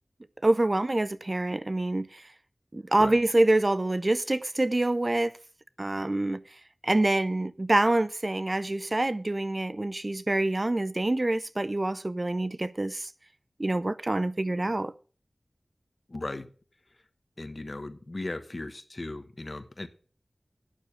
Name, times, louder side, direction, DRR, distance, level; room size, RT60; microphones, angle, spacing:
voice 1, 0.4-2.2 2.7-5.4 5.8-6.4 6.8-13.1 13.6-14.9, right 2 dB, 40° right, 0.5 m, -26 dB
voice 2, 16.1-16.5 16.9-17.0 17.4-19.9, left 2 dB, 50° left, 1.1 m, -37 dB
9.1 x 6.7 x 6.4 m
cardioid pair, 40°, 0 cm